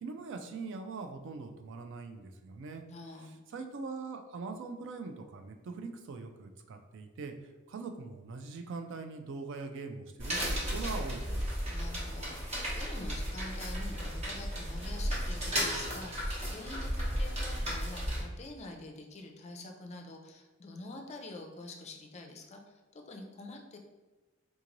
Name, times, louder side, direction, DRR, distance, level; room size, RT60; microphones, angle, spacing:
voice 1, 0.0-2.8 3.5-7.3 7.7-11.4, right 4 dB, 60° right, 6 dB, 0.4 m, -42 dB
voice 2, 2.9-3.4 11.7-23.8, left 2 dB, 30° left, 3 dB, 0.4 m, -46 dB
sound 1, 10.2-18.2, equal, 30° right, 1.0 m, -34 dB
3.6 x 3.0 x 2.5 m, 1.2 s
head